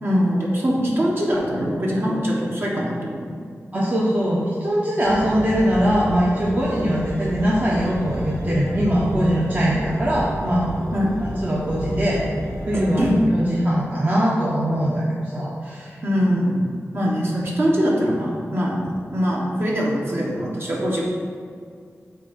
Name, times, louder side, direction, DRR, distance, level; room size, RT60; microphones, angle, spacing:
voice 1, 0.0-3.4 10.9-11.2 12.7-13.2 16.0-16.6 16.9-21.0, equal, 50° right, -4 dB, 1.5 m, -22 dB
voice 2, 3.7-10.7 11.4-12.2 12.7-15.0 15.3-16.0, equal, 30° right, -6 dB, 0.9 m, -21 dB
sound 1, 5.0-13.3, equal, 70° right, 1.4 m, -30 dB
8.2 x 2.8 x 5.9 m, 2.2 s
wide cardioid pair, 105°, 5 cm